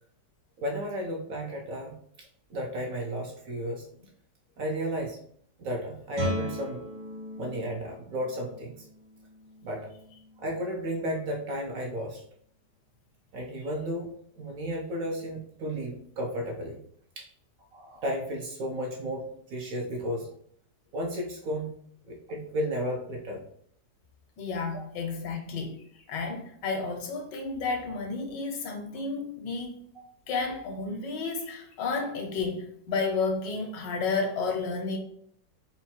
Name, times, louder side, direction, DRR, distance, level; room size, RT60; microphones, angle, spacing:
voice 1, 0.6-1.9 2.5-3.8 4.6-5.2 5.6-6.8 7.4-8.8 9.6-9.9 10.4-12.2 13.3-14.1 14.4-16.8 17.2-17.3 17.7-20.3 20.9-21.7 22.1-23.4 24.7-24.8 29.9-30.0, equal, 65° right, 0 dB, 0.9 m, -33 dB
Guitar, 6.1-11.7, equal, 85° right, 1.9 m, -39 dB
voice 2, 24.4-25.8 26.1-29.8 30.3-35.0, left 4 dB, 85° left, 3 dB, 1.5 m, -31 dB
4.2 x 2.2 x 4.1 m, 0.64 s
omnidirectional pair, 1.9 m